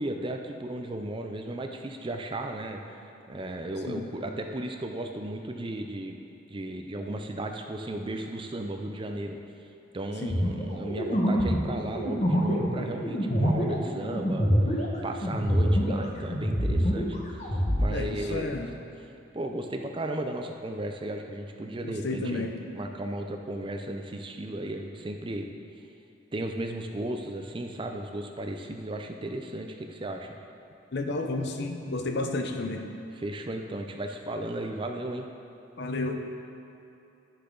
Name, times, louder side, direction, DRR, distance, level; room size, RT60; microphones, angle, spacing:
voice 1, 0.0-6.1 6.5-9.4 9.9-14.5 15.0-17.2 17.4-18.6 19.3-22.5 22.7-25.5 26.3-30.3 33.1-35.3, right 1 dB, 25° right, 4 dB, 0.5 m, -35 dB
sound 1, 10.3-16.0 16.3-17.9, equal, 35° left, 1.2 m, -25 dB
voice 2, 17.9-18.7 21.8-22.5 30.9-32.8 35.8-36.2, left 2 dB, 60° left, 5 dB, 0.7 m, -31 dB
11.5 x 6.6 x 3.9 m, 2.9 s
head